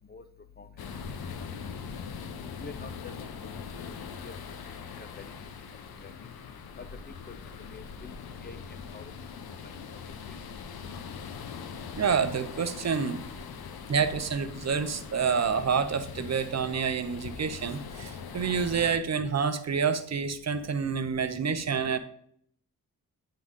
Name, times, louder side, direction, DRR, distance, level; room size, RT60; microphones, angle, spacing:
sound 1, 0.8-19.0, left 6 dB, 80° left, 0.7 m, -42 dB
voice 1, 2.6-2.9 3.4-4.3 5.2-5.3 6.0-6.1 6.8-6.9 7.3-8.1 8.4-8.6 8.9-9.1 9.6-9.7, left 4 dB, 30° left, 10 dB, 0.4 m, -46 dB
voice 2, 11.9-13.2 13.9-22.0, right 6 dB, 45° right, 11 dB, 0.7 m, -28 dB
9.5 x 3.8 x 3.7 m, 0.65 s
cardioid pair, 70°, 36 cm